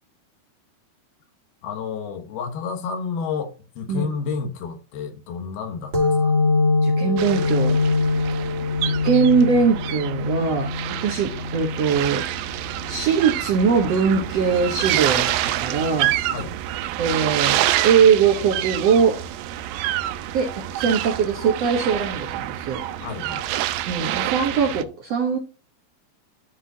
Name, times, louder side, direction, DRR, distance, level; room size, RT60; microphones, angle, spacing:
voice 1, 1.6-6.3 16.3-16.6 23.0-23.4, left 5 dB, 75° left, 3.3 m, -30 dB
sound 1, 5.9-13.2, left 3 dB, 30° right, 1.4 m, -24 dB
voice 2, 6.8-7.8 8.8-10.7 11.0-12.3 12.9-16.2 17.0-19.2 20.3-22.8 23.9-25.4, right 6 dB, 60° right, 1.7 m, -21 dB
sound 2, 7.2-24.8, right 13 dB, 85° right, 2.5 m, -27 dB
13.0 x 4.9 x 2.8 m
omnidirectional pair, 4.5 m